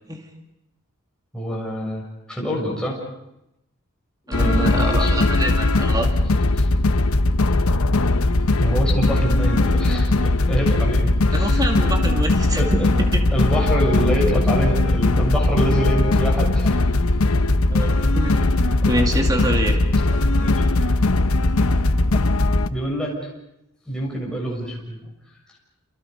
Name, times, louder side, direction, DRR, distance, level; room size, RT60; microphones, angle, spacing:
voice 1, 1.3-3.0 4.3-5.3 6.6-6.7 8.6-11.6 12.5-12.7 13.3-16.8 20.3-20.5 22.7-23.1 23.9-25.0, equal, 5° left, -3 dB, 7.1 m, -26 dB
sound 1, 4.3-22.7, left 2 dB, 85° left, 1.0 m, -19 dB
voice 2, 4.3-6.1 11.3-13.2 17.7-18.4 18.8-19.9, right 1 dB, 15° right, 3 dB, 2.5 m, -26 dB
sound 2, 13.3-13.5 14.4-14.6 15.4-15.6 16.6-16.8 18.0-18.2 18.9-19.1 20.1-20.2 21.1-21.2 22.1-22.2, left 3 dB, 30° left, 3.0 m, -41 dB
29.0 x 28.5 x 5.4 m, 0.86 s
head